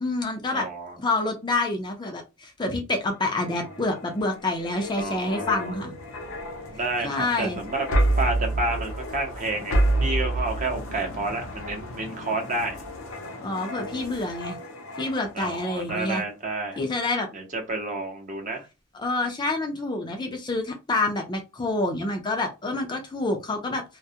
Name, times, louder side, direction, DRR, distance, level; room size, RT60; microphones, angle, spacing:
voice 1, 0.0-0.7 1.0-5.9 7.0-7.6 13.4-14.6 15.0-16.2 16.8-17.3 18.9-23.8, left 2 dB, 20° left, 3 dB, 0.4 m, -27 dB
voice 2, 0.5-1.0 4.9-5.8 6.7-7.9 8.2-9.7 10.0-12.8 15.3-16.8 17.3-18.6, right 2 dB, 40° right, 3 dB, 0.7 m, -30 dB
sound 1, 3.2-15.5 15.9-16.1, right 1 dB, 85° left, 0.6 m, -30 dB
2.2 x 2.1 x 2.7 m, 0.27 s
head